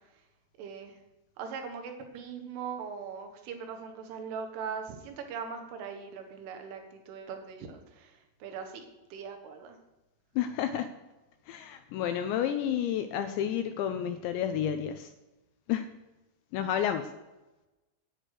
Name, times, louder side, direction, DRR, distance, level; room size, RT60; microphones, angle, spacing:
voice 1, 0.6-1.0 1.4-9.8, right 6 dB, 80° right, 5 dB, 3.9 m, -40 dB
voice 2, 10.4-10.9 11.5-15.1 15.7-15.9 16.5-17.1, left 9 dB, 80° left, 8 dB, 2.7 m, -30 dB
10.0 x 9.2 x 6.4 m, 1.0 s
omnidirectional pair, 5.7 m